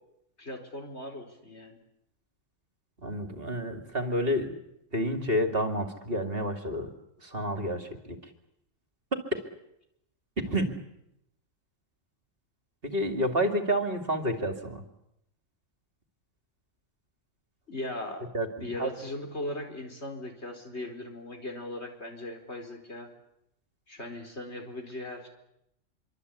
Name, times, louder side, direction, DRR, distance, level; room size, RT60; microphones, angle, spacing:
voice 1, 0.4-1.8 17.7-18.2 18.6-23.1 23.9-25.3, left 1 dB, 55° left, 3 dB, 4.8 m, -38 dB
voice 2, 3.0-4.5 4.9-6.9 7.2-8.2 9.1-9.4 10.4-10.7 12.8-14.8 18.3-18.9, equal, 45° right, 6 dB, 2.7 m, -29 dB
25.5 x 24.5 x 8.4 m, 0.80 s
omnidirectional pair, 1.3 m